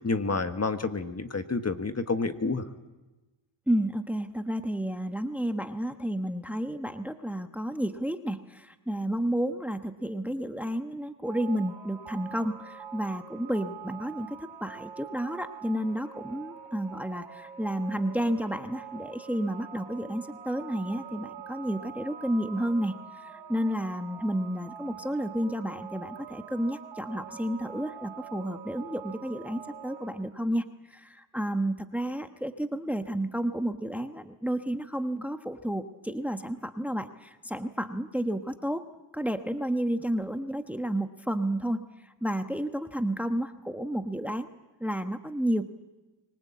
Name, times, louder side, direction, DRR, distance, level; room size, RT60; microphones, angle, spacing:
voice 1, 0.0-2.6, left 3 dB, 30° left, 8 dB, 1.5 m, -29 dB
voice 2, 3.7-22.9 23.2-38.8 39.1-41.9 42.2-44.5 44.8-45.6, right 1 dB, 5° right, 8 dB, 1.2 m, -31 dB
sound 1, 11.2-30.1, right 8 dB, 70° right, 4.4 m, -44 dB
25.0 x 19.0 x 8.6 m, 1.2 s
cardioid pair, 70°, 48 cm